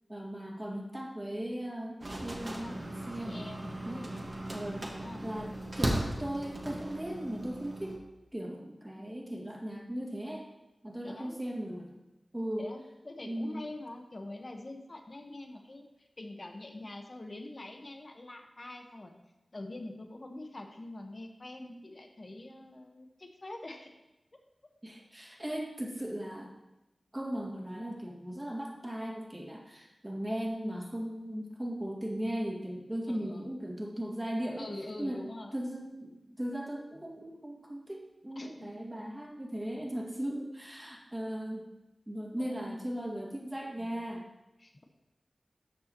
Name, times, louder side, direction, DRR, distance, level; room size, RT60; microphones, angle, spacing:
voice 1, 0.1-2.8 3.1-3.5 3.8-4.1 4.5-8.0 8.3-10.5 10.8-12.0 12.3-12.7 13.2-13.7 24.8-26.5 27.1-34.7 35.0-35.3 35.5-41.7 42.1-44.3, equal, 15° right, -2 dB, 2.1 m, -38 dB
sound 1, 2.0-8.0, right 1 dB, 45° right, 1.5 m, -37 dB
voice 2, 2.5-2.8 3.2-4.1 4.8-5.2 11.0-11.4 12.6-12.8 13.0-19.1 19.5-24.0 33.1-33.5 34.6-35.5 38.4-38.7 42.4-42.9 43.8-44.0 44.6-44.8, left 2 dB, 50° left, 4 dB, 1.1 m, -45 dB
13.5 x 6.6 x 3.0 m, 0.97 s
wide cardioid pair, 55°, 0 cm